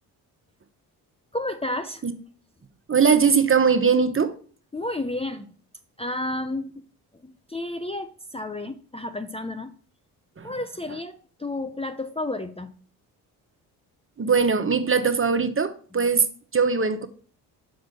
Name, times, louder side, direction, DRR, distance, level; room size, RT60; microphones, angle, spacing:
voice 1, 1.3-2.0 4.7-5.5 6.0-6.8 7.2-9.7 10.4-12.7, left 2 dB, 15° left, 0.7 m, -31 dB
voice 2, 2.9-4.3 10.4-10.5 14.2-17.1, right 5 dB, 25° right, 1.1 m, -21 dB
6.4 x 5.0 x 6.5 m
hypercardioid pair, 50°, 46 cm